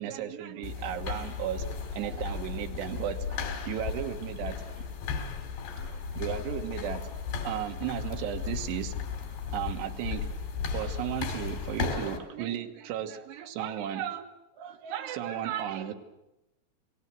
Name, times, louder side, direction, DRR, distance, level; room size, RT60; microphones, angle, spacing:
voice 1, 0.0-1.7 1.9-4.8 5.8-7.1 7.4-9.0 9.5-10.3 10.7-14.3 14.6-15.9, right 10 dB, 90° right, 6 dB, 3.6 m, -35 dB
sound 1, 0.6-12.2, left 5 dB, 85° left, 4.8 m, -35 dB
28.0 x 19.0 x 7.6 m, 0.95 s
omnidirectional pair, 4.7 m